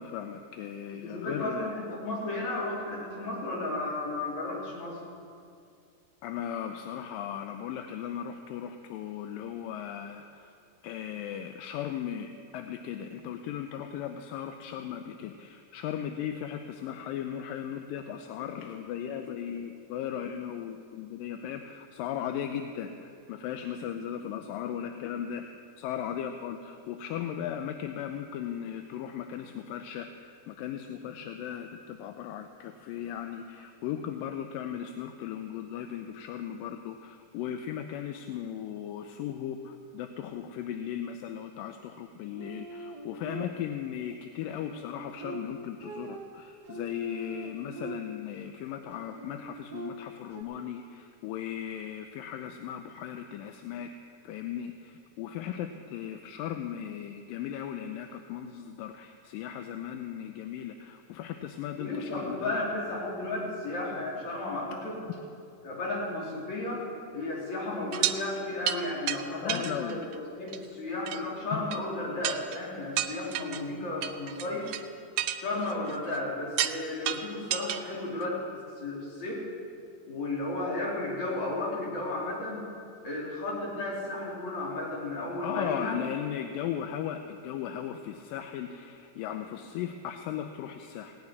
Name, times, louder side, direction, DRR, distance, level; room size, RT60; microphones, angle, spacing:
voice 1, 0.0-1.7 6.2-10.5 10.8-53.9 54.2-62.7 69.4-70.1 71.5-71.6 85.4-91.2, left 9 dB, 85° left, 6 dB, 2.4 m, -37 dB
voice 2, 1.0-5.0 19.2-19.3 61.8-65.0 65.6-66.8 67.1-74.7 75.4-78.4 78.8-79.4 80.1-82.6 83.0-86.0, left 2 dB, 55° left, -5 dB, 4.9 m, -34 dB
sound 1, 42.4-43.9 44.4-48.4 48.9-50.4, right 2 dB, 60° right, 1.0 m, -43 dB
sound 2, 67.9-68.2 68.7-68.8 69.1-69.2 69.5-70.2 70.5-70.6 71.1-71.2 71.7-71.8 72.2-72.6 73.0-73.6 74.0-74.8 75.2-76.2 76.6-76.8 77.1-77.8 78.2-78.3, right 12 dB, 80° right, 1.9 m, -31 dB
17.0 x 8.8 x 9.6 m, 2.4 s
omnidirectional pair, 3.9 m